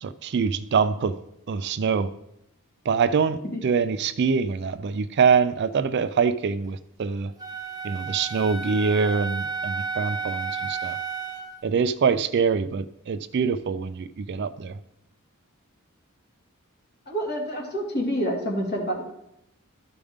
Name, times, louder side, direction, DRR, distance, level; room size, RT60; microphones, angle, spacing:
voice 1, 0.0-1.1 1.5-2.1 2.9-7.3 7.8-11.0 11.6-14.7, right 5 dB, 55° right, 13 dB, 0.4 m, -24 dB
Wind instrument woodwind instrument, 7.4-11.5, right 5 dB, 20° right, 1.0 m, -32 dB
voice 2, 17.1-19.0, equal, 50° left, -1 dB, 2.1 m, -27 dB
12.5 x 5.0 x 3.6 m, 0.82 s
head